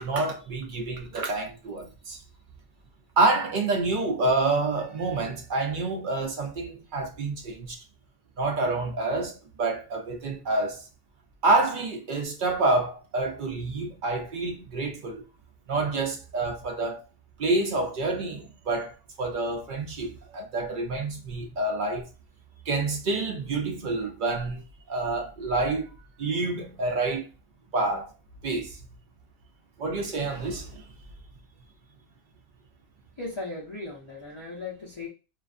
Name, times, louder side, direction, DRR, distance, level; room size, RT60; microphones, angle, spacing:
voice 1, 0.0-2.2 3.2-7.8 8.4-10.9 11.4-15.2 15.7-17.0 17.4-22.1 22.7-24.6 24.9-27.3 27.7-28.1 28.4-28.8 29.8-30.9, right 2 dB, 55° right, 0.6 m, -28 dB
voice 2, 33.2-35.1, left 3 dB, 35° left, 0.5 m, -37 dB
2.4 x 2.2 x 2.4 m
omnidirectional pair, 1.2 m